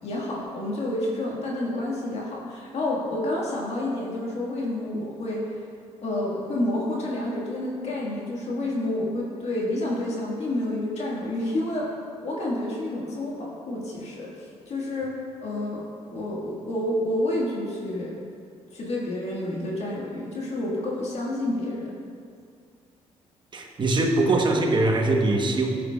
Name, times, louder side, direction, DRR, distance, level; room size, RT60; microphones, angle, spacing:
voice 1, 0.0-5.6 6.0-11.9 12.2-15.1 15.4-18.1 18.7-21.9, left 1 dB, 60° left, -4 dB, 1.8 m, -29 dB
voice 2, 23.5-25.8, right 2 dB, 40° right, 2 dB, 1.2 m, -22 dB
12.0 x 7.4 x 2.4 m, 2.2 s
cardioid pair, 80°, 12 cm